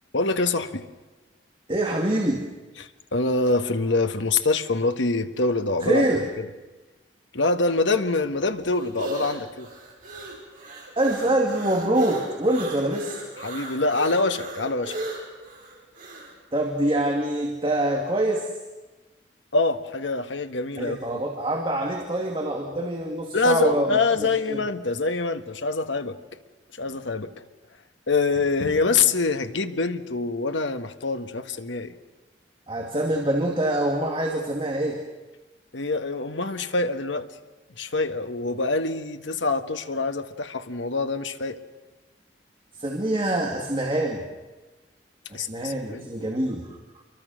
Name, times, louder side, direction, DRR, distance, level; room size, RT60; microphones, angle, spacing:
voice 1, 0.1-0.8 2.8-6.0 6.4-6.5 7.3-9.7 13.4-14.9 19.5-21.2 23.3-26.2 26.8-27.3 28.1-31.9 35.7-37.3 37.8-41.6 45.3-46.0, left 3 dB, 80° left, 8 dB, 1.6 m, -25 dB
voice 2, 1.7-2.5 5.8-6.2 11.0-13.2 16.5-18.5 20.8-24.6 32.7-35.0 42.8-44.3 45.3-46.7, right 1 dB, 30° right, 1 dB, 2.4 m, -25 dB
sound 1, 8.1-16.3, right 1 dB, 45° right, 6.7 m, -36 dB
28.5 x 23.5 x 6.5 m, 1.2 s
head